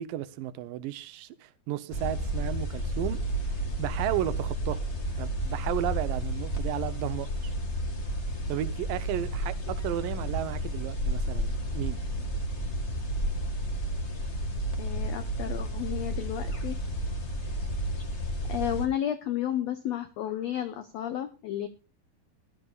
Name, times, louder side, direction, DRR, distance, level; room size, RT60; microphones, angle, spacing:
voice 1, 0.0-3.2 3.8-4.8 5.2-7.5 8.5-12.0, right 13 dB, 75° right, 2.4 m, -33 dB
sound 1, 1.9-18.8, equal, 50° left, 0.8 m, -31 dB
voice 2, 14.8-16.8 18.5-21.7, left 11 dB, 85° left, 1.4 m, -32 dB
21.0 x 12.0 x 2.4 m
omnidirectional pair, 4.1 m